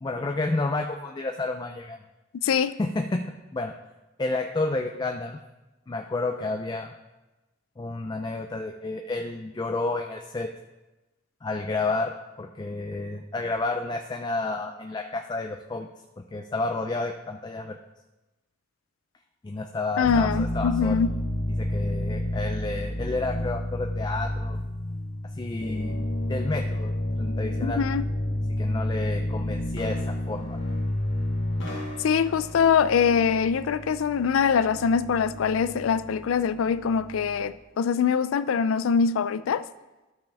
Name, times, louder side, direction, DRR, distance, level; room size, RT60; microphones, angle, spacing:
voice 1, 0.0-2.0 2.8-3.2 3.5-3.7 4.2-5.4 5.9-6.9 7.8-10.5 11.4-15.9 16.2-17.8 19.4-21.0 21.6-24.6 25.4-26.0 26.3-27.8 28.6-30.6, left 2 dB, 20° left, 0.4 m, -30 dB
voice 2, 2.4-2.7 20.0-21.1 27.6-28.1 32.0-39.6, left 6 dB, 90° left, 0.4 m, -23 dB
sound 1, 20.0-37.4, left 1 dB, 70° left, 1.8 m, -31 dB
13.0 x 5.4 x 3.4 m
head